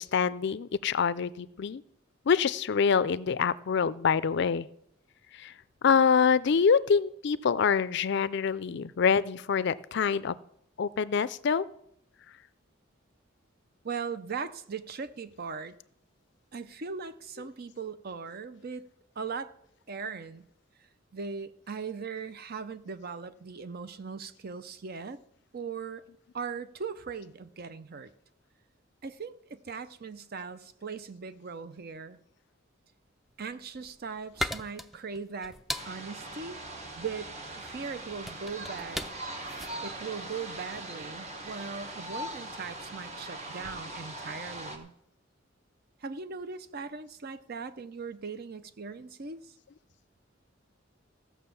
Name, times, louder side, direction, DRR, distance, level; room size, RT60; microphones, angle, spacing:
voice 1, 0.0-1.8 2.3-4.7 5.3-5.5 5.8-10.3 10.8-11.6, left 6 dB, 60° left, 0.4 m, -25 dB
voice 2, 13.8-15.8 16.5-18.9 19.2-19.5 19.9-20.5 21.1-25.2 25.5-26.1 26.3-28.1 29.0-32.2 33.4-35.6 35.9-36.6 37.0-39.1 39.8-44.9 46.0-49.5, right 5 dB, 50° right, 0.6 m, -39 dB
sound 1, 33.5-40.9, left 1 dB, ahead, 0.4 m, -39 dB
sound 2, 35.7-44.8, right 1 dB, 35° right, 1.4 m, -41 dB
15.5 x 6.0 x 6.9 m
head